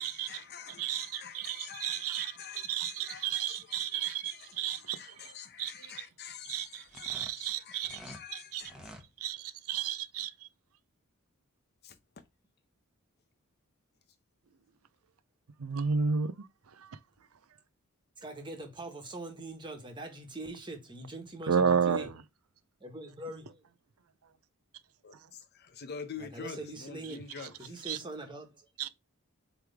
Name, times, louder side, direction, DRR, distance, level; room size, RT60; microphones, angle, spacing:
voice 1, 0.0-8.9 11.8-12.0 25.0-27.8, left 6 dB, 50° left, 0.8 m, -47 dB
voice 2, 0.8-2.3 2.7-5.0 5.6-5.7 6.5-8.0 8.5-8.6 9.2-10.3 15.6-16.5 21.5-22.1 27.9-28.0 28.8-28.9, right 7 dB, 75° right, 0.6 m, -32 dB
sound 1, 6.8-8.2 8.6-9.1, equal, 5° right, 1.1 m, -49 dB
voice 3, 18.2-22.1 22.8-23.6 26.2-27.2 27.6-28.7, right 2 dB, 20° right, 1.5 m, -42 dB
7.9 x 3.4 x 3.5 m
head